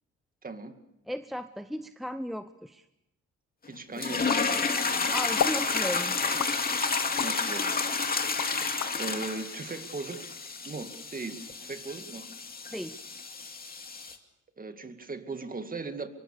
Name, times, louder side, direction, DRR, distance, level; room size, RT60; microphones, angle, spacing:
voice 1, 0.4-0.8 3.7-5.2 7.2-8.1 9.0-10.3 10.6-12.3 14.6-16.1, right 3 dB, 30° right, 8 dB, 2.3 m, -39 dB
voice 2, 1.1-2.8 5.1-6.5 12.7-13.0, equal, ahead, 10 dB, 0.8 m, -36 dB
sound 1, 4.0-14.1, left 4 dB, 30° left, 2.4 m, -30 dB
sound 2, 4.3-5.0 5.4-5.7 6.4-7.4 7.9-9.0, left 9 dB, 60° left, 1.3 m, -33 dB
24.5 x 23.0 x 6.9 m, 0.86 s
cardioid pair, 90°, 30 cm